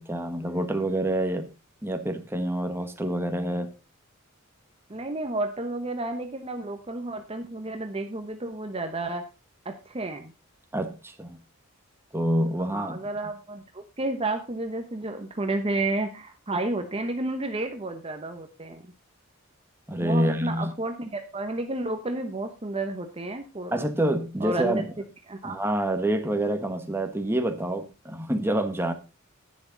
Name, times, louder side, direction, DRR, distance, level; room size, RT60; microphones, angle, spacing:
voice 1, 0.0-1.5 1.8-3.7 10.7-11.4 12.1-13.0 19.9-20.7 23.7-24.8 25.4-28.9, right 1 dB, 10° right, 6 dB, 1.3 m, -27 dB
voice 2, 4.9-9.2 9.6-10.3 12.6-18.9 20.0-23.8 24.4-24.9 25.3-25.7, right 2 dB, 25° right, 6 dB, 1.0 m, -31 dB
11.5 x 9.6 x 3.9 m, 0.29 s
head